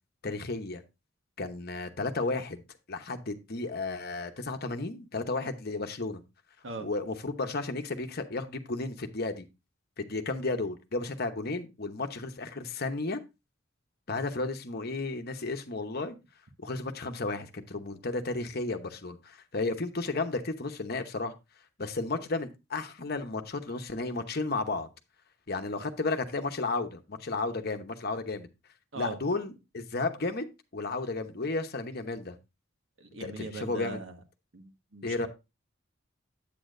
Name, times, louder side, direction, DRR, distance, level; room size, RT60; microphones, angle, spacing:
voice 1, 0.2-0.8 1.4-2.6 2.9-6.2 6.8-9.4 10.0-13.2 14.1-16.1 16.6-21.3 21.8-24.9 25.5-28.5 28.9-30.5 30.7-32.4 33.2-34.0 35.0-35.3, left 3 dB, 50° left, 0.9 m, -33 dB
voice 2, 33.0-34.1 34.5-35.3, right 2 dB, 70° right, 1.5 m, -39 dB
8.5 x 8.4 x 2.5 m
head